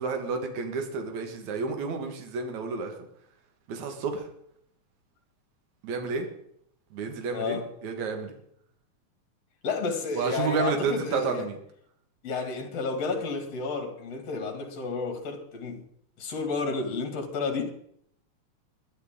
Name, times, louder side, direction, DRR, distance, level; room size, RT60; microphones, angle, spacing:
voice 1, 0.0-2.9 3.7-4.2 5.8-6.3 6.9-8.4 10.2-11.6, right 5 dB, 75° right, 2.9 m, -30 dB
voice 2, 7.3-7.7 9.6-11.5 12.2-15.8 16.2-17.7, left 4 dB, 55° left, 3.3 m, -31 dB
21.0 x 11.5 x 3.8 m
omnidirectional pair, 3.4 m